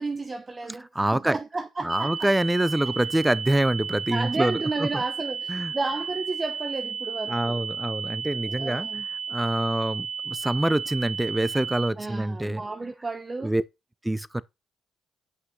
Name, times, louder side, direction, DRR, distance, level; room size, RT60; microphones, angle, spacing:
voice 1, 0.0-2.3 4.1-7.6 8.4-9.1 12.0-13.5, right 3 dB, 30° right, 0.9 m, -32 dB
voice 2, 0.9-1.4 1.8-5.0 5.5-5.7 7.3-8.9 9.3-12.6 13.4-13.6 14.0-14.4, right 1 dB, 10° right, 0.6 m, -25 dB
sound 1, 1.9-11.9, right 5 dB, 55° right, 0.5 m, -33 dB
8.2 x 5.6 x 3.7 m
supercardioid pair, 60°, 0 cm